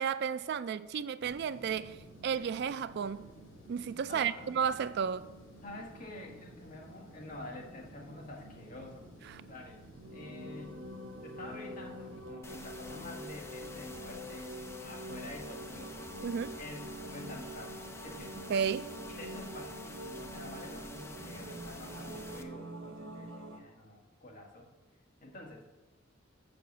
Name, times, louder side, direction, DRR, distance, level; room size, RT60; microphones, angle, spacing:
voice 1, 0.0-3.3 3.7-5.3 16.2-16.5 18.5-18.9, right 7 dB, 55° right, 0.3 m, -33 dB
sound 1, 1.2-12.3, right 1 dB, 80° left, 3.1 m, -53 dB
voice 2, 4.1-4.6 5.6-9.1 9.4-9.8 10.1-11.0 11.2-16.0 16.6-18.4 19.2-24.7 25.2-25.7, left 1 dB, 45° left, 1.7 m, -48 dB
sound 2, 10.0-23.6, right 1 dB, 90° right, 0.9 m, -45 dB
sound 3, 12.4-22.4, left 2 dB, 15° left, 0.6 m, -49 dB
6.8 x 6.0 x 7.2 m
head